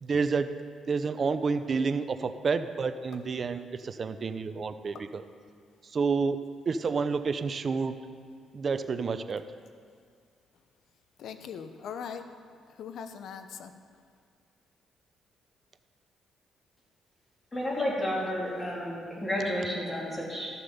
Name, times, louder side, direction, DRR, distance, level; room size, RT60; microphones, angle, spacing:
voice 1, 0.0-0.5 0.9-5.2 5.9-6.4 6.7-7.9 8.5-9.4, right 5 dB, 45° right, 11 dB, 0.6 m, -29 dB
voice 2, 11.2-12.3 12.8-13.7, left 7 dB, 70° left, 9 dB, 0.7 m, -40 dB
voice 3, 17.5-20.5, left 1 dB, 20° left, -5 dB, 3.5 m, -31 dB
13.0 x 6.9 x 5.4 m, 2.1 s
cardioid pair, 90°, 0 cm